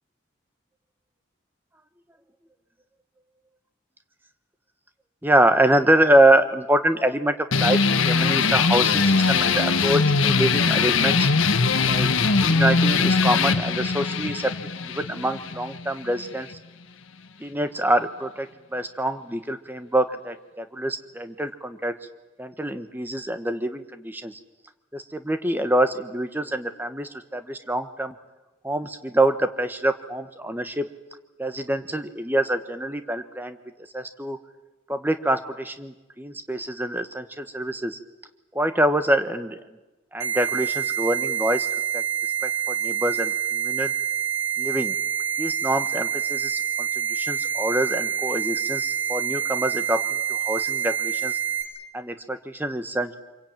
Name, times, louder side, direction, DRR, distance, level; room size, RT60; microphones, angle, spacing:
voice 1, 5.2-11.3 11.9-14.5 14.8-16.6 17.4-21.9 22.4-24.4 24.9-28.1 28.6-30.9 31.4-33.6 33.9-34.4 34.9-38.0 38.5-39.6 40.1-41.7 41.9-42.0 42.4-43.9 44.6-44.9 45.4-51.4 51.9-53.1, right 1 dB, 10° right, 9 dB, 1.2 m, -25 dB
sound 1, 7.5-16.6, left 4 dB, 75° left, 1.5 m, -21 dB
sound 2, 40.2-51.6, right 9 dB, 80° right, 3.9 m, -27 dB
26.5 x 23.0 x 9.0 m, 1.1 s
head